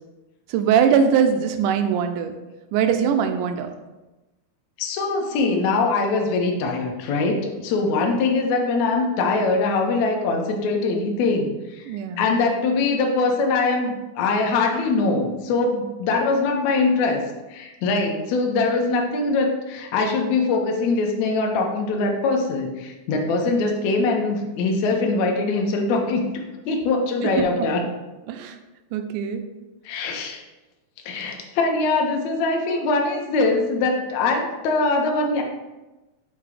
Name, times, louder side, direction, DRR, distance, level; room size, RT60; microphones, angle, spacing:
voice 1, 0.5-2.4 2.7-3.7 11.9-12.3 27.2-27.7 28.3-28.6 28.9-29.4, right 7 dB, 85° right, 7 dB, 2.1 m, -21 dB
voice 2, 4.8-11.9 12.2-17.2 17.5-26.3 26.7-27.8 29.9-30.4 31.1-35.4, left 3 dB, 70° left, 1 dB, 1.8 m, -22 dB
6.9 x 2.8 x 4.8 m, 1.1 s
omnidirectional pair, 3.7 m